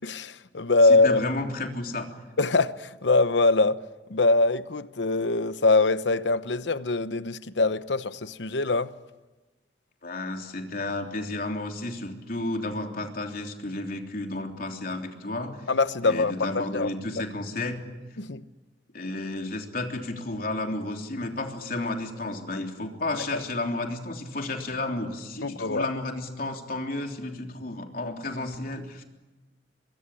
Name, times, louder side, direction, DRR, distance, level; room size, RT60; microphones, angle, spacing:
voice 1, 0.0-1.2 2.4-3.8 4.1-8.9 15.7-16.9 18.2-18.4 25.4-25.9, left 3 dB, 85° left, 1.0 m, -23 dB
voice 2, 0.8-2.2 10.0-15.7 16.0-17.8 18.9-29.0, left 2 dB, 55° left, 3.4 m, -32 dB
24.0 x 23.0 x 9.9 m
head